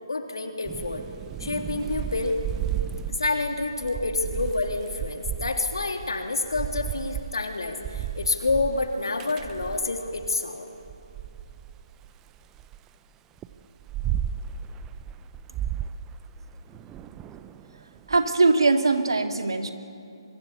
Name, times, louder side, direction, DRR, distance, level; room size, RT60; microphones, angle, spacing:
voice 1, 0.1-1.0 1.4-2.4 3.1-10.7, left 3 dB, 70° left, 4 dB, 3.3 m, -28 dB
Thunder / Rain, 0.6-10.4 10.8-12.8 13.4-18.2, right 10 dB, 15° right, 0.7 m, -34 dB
voice 2, 18.1-19.7, right 3 dB, 70° right, 6 dB, 2.2 m, -21 dB
24.0 x 23.5 x 8.3 m, 2.7 s
figure-of-eight pair, 145°, 3 cm